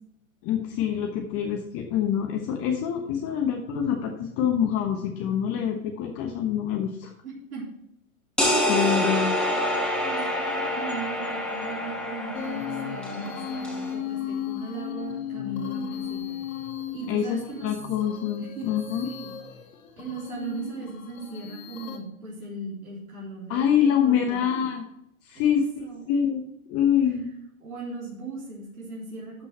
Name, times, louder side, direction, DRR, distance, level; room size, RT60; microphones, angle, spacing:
voice 1, 0.4-7.1 8.7-9.4 10.1-10.2 17.1-19.1 23.5-24.8 25.2-25.7 26.1-27.3, left 9 dB, 35° left, 3 dB, 1.1 m, -25 dB
voice 2, 7.2-7.6 8.5-16.4 16.9-17.7 18.4-18.7 19.0-19.3 20.0-24.7 25.3-26.0 27.6-29.5, right 3 dB, 90° right, -6 dB, 3.8 m, -38 dB
sound 1, 8.4-13.9, left 1 dB, ahead, 2.3 m, -27 dB
sound 2, 12.3-22.0, left 9 dB, 70° left, 1.5 m, -36 dB
12.0 x 5.7 x 4.4 m, 0.79 s
hypercardioid pair, 120°, 42 cm